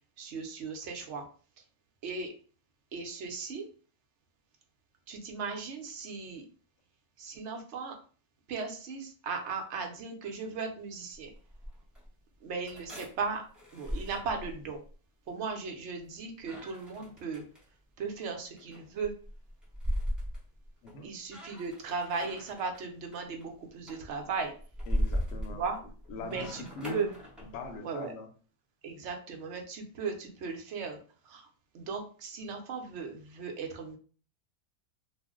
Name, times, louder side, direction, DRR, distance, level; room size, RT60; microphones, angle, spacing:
voice 1, 0.2-1.2 2.0-2.3 2.9-3.7 5.1-6.4 7.2-8.0 8.5-11.3 12.4-13.4 13.7-14.8 15.3-17.4 18.0-19.1 21.0-24.5 25.5-25.8 26.2-27.1 27.8-28.1 28.8-31.0 31.2-31.5 31.7-34.0, right 5 dB, 60° right, 3 dB, 0.8 m, -37 dB
sound 1, 11.1-12.1 12.7-14.9 16.4-17.6 18.3-21.0 21.3-22.8 23.1-23.5 23.9-27.8, equal, ahead, 0.4 m, -37 dB
voice 2, 20.8-21.2 24.9-25.6 26.1-27.1 27.4-28.3, left 3 dB, 65° left, 4 dB, 0.8 m, -41 dB
2.5 x 2.1 x 3.5 m, 0.40 s
omnidirectional pair, 1.5 m